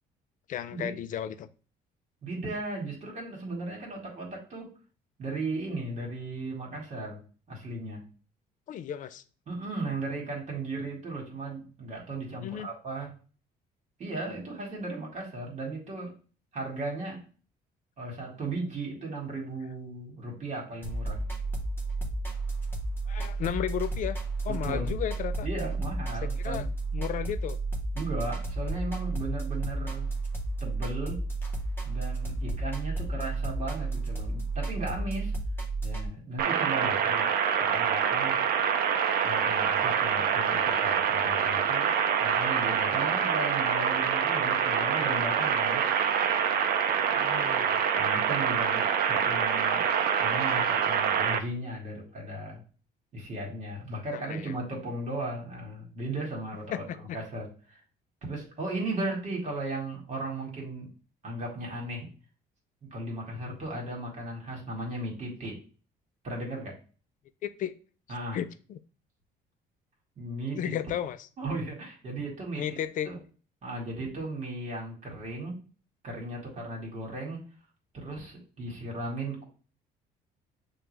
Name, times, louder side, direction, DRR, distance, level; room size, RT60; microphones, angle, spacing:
voice 1, 0.5-1.5 8.7-9.2 12.4-12.7 23.1-25.5 26.2-26.6 26.9-27.6 47.1-47.9 54.1-54.5 56.7-57.2 67.4-67.7 68.3-68.8 70.6-71.3 72.6-73.1, left 10 dB, 50° left, 12 dB, 0.4 m, -34 dB
voice 2, 2.2-4.7 5.2-7.2 7.5-8.0 9.5-13.1 14.0-16.1 16.5-17.2 18.0-21.2 24.5-24.9 25.4-26.7 27.9-30.1 30.6-31.2 31.8-35.3 35.8-38.4 39.2-41.9 42.2-45.8 47.9-49.9 50.2-52.6 53.1-56.9 57.1-57.8 58.3-60.9 61.2-62.1 62.9-65.6 66.2-66.8 68.1-68.4 70.2-70.7 71.4-72.6 73.1-73.2 73.6-75.5 76.0-77.4 77.9-79.4, right 2 dB, 45° right, -1 dB, 1.6 m, -36 dB
sound 1, 20.8-36.1, right 2 dB, 10° left, 0.9 m, -32 dB
sound 2, 36.4-51.4, right 8 dB, 60° right, 0.5 m, -26 dB
6.0 x 2.4 x 3.2 m, 0.37 s
cardioid pair, 110°, 17 cm